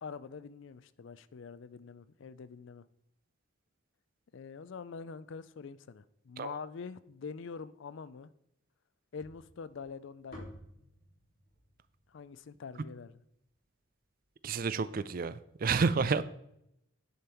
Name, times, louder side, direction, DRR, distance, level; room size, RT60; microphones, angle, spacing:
voice 1, 0.0-2.9 4.3-8.3 9.1-10.5 12.1-13.2, left 5 dB, 60° left, 0.4 m, -45 dB
sound 1, 9.2-13.5, equal, 45° left, 3.6 m, -53 dB
voice 2, 14.4-16.2, right 5 dB, 40° right, 0.4 m, -30 dB
10.0 x 5.4 x 4.4 m
head